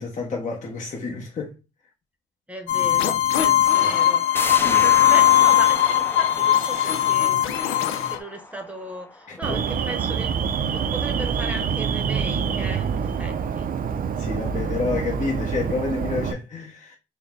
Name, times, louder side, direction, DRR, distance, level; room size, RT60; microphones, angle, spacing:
voice 1, 0.0-1.5 3.8-3.9 4.6-4.8 9.3-9.6 14.2-17.0, left 4 dB, 40° left, 1.1 m, -29 dB
voice 2, 2.5-4.2 4.8-7.4 7.9-10.3 10.7-12.9 13.2-13.7, right 1 dB, 5° right, 0.9 m, -36 dB
sound 1, 2.7-8.2, left 11 dB, 85° left, 0.6 m, -19 dB
sound 2, 4.3-9.8 10.2-10.3, left 2 dB, 10° left, 0.5 m, -33 dB
Alarm, 9.4-16.3, right 6 dB, 45° right, 0.5 m, -26 dB
4.0 x 2.2 x 3.7 m
cardioid pair, 90°, 20 cm